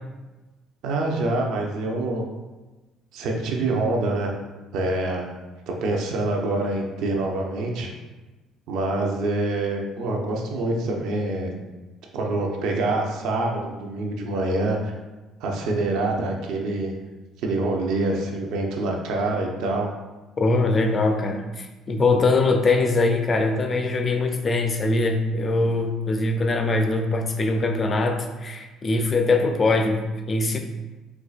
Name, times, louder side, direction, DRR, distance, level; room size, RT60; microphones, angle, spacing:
voice 1, 0.8-2.2 3.1-4.3 4.7-5.3 5.7-7.9 8.7-11.5 12.1-14.9 15.4-16.9 17.4-19.9 22.1-22.2, right 2 dB, 75° right, 1 dB, 0.6 m, -25 dB
voice 2, 20.4-30.6, left 3 dB, 30° left, 5 dB, 0.4 m, -22 dB
4.4 x 2.4 x 2.4 m, 1.2 s
cardioid pair, 135°, 0 cm